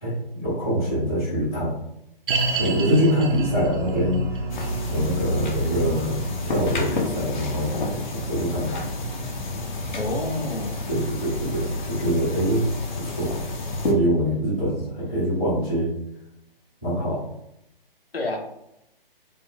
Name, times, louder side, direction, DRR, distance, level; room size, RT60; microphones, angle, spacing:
voice 1, 0.0-1.7 2.5-4.5 4.9-6.1 6.4-8.8 10.9-12.7 13.0-13.3 13.8-15.9 16.8-17.2, equal, 5° left, -17 dB, 0.3 m, -24 dB
sound 1, 2.3-13.6 13.8-13.9 14.6-14.7, right 2 dB, 65° right, 0.5 m, -32 dB
sound 2, 4.5-13.9, left 2 dB, 55° left, 0.6 m, -30 dB
voice 2, 9.9-10.8 18.1-18.4, left 1 dB, 90° left, 2 dB, 0.7 m, -28 dB
2.4 x 2.0 x 2.7 m, 0.82 s
figure-of-eight pair, 135°, 29 cm